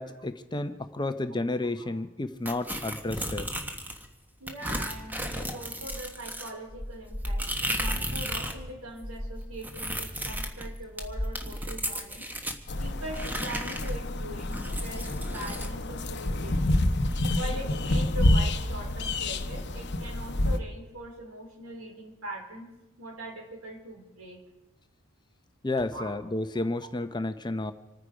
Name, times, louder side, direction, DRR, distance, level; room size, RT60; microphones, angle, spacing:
voice 1, 0.0-3.5 25.6-27.7, left 2 dB, 20° left, 9 dB, 0.7 m, -31 dB
sound 1, 2.5-4.1 4.5-8.6 8.9-12.6 13.1-15.7, equal, 10° right, 1.4 m, -34 dB
voice 2, 4.4-12.3 12.8-16.8 17.4-22.7 23.0-24.4 25.9-26.1 26.5-26.6, right 1 dB, 75° right, 0 dB, 4.3 m, -42 dB
sound 2, 12.7-20.6, left 1 dB, 55° left, 0.9 m, -28 dB
27.0 x 9.7 x 5.0 m, 0.99 s
head